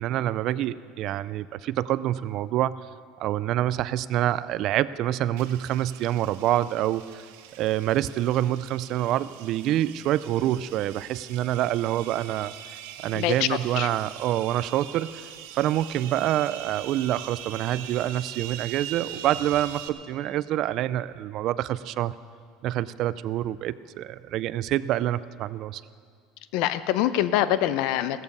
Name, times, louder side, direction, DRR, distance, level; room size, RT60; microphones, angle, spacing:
voice 1, 0.0-2.8 3.2-7.2 7.6-12.5 13.0-15.3 15.6-22.1 22.6-25.8, right 13 dB, 40° right, 17 dB, 0.3 m, -26 dB
sound 1, 5.4-19.9, right 11 dB, 80° right, 1.0 m, -42 dB
voice 2, 13.1-13.9 26.5-28.2, left 12 dB, 55° left, 14 dB, 0.6 m, -25 dB
16.5 x 14.0 x 5.4 m, 2.1 s
cardioid pair, 170°, 0 cm